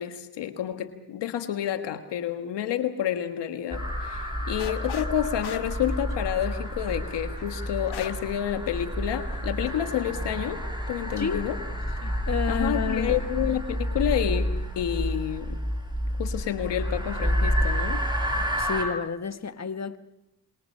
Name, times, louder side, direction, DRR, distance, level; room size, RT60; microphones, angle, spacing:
voice 1, 0.0-10.6 10.9-11.6 12.5-15.6 16.2-18.0, left 10 dB, 85° left, 1.5 m, -29 dB
sound 1, 3.7-18.8, equal, 10° right, 7.0 m, -29 dB
sound 2, 4.6-5.1 5.4-8.3 8.7-8.8 9.3-9.7, left 8 dB, 70° left, 1.4 m, -38 dB
voice 2, 12.0-13.2 18.3-20.0, left 6 dB, 40° left, 1.5 m, -30 dB
26.5 x 23.0 x 5.6 m
supercardioid pair, 40°, 41 cm